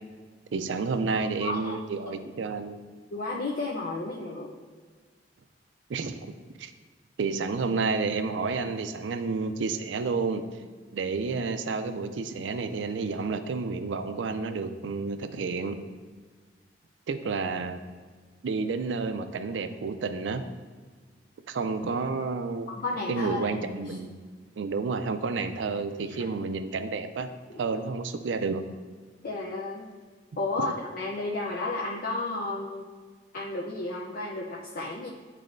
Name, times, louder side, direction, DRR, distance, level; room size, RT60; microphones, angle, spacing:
voice 1, 0.5-2.8 5.9-6.3 6.6-6.7 7.2-10.4 10.9-15.8 17.1-17.8 18.4-20.4 21.5-22.7 23.1-24.1 24.6-27.3 27.6-28.6, right 4 dB, 80° right, 9 dB, 0.4 m, -30 dB
voice 2, 1.4-1.8 3.1-4.6 22.8-23.5 23.9-24.0 26.0-26.3 27.5-27.6 29.2-29.9 30.4-32.9 33.3-35.1, left 2 dB, 55° left, -2 dB, 0.5 m, -32 dB
9.6 x 4.1 x 2.6 m, 1.5 s
head